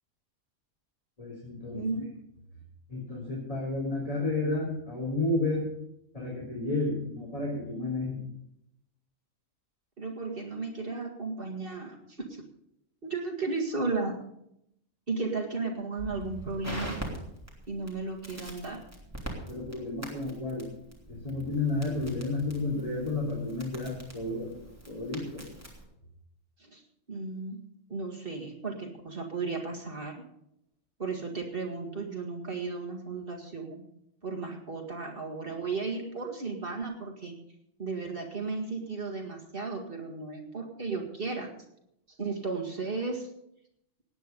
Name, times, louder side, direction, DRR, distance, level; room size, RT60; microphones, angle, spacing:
voice 1, 1.2-1.8 2.9-5.7 6.1-8.2 19.5-20.7 21.1-24.5 24.9-25.4, left 2 dB, 25° left, -5 dB, 3.7 m, -31 dB
voice 2, 1.7-2.1 10.0-12.4 13.0-14.2 15.1-17.0 17.7-18.8 26.6-26.8 27.1-27.6 27.9-30.2 31.0-33.8 34.2-37.3 37.8-41.5 42.1-43.3, right 4 dB, 45° right, 1 dB, 2.3 m, -34 dB
Crackle, 16.0-25.8, right 1 dB, 10° right, 3.1 m, -43 dB
18.0 x 9.3 x 5.3 m, 0.77 s
omnidirectional pair, 1.4 m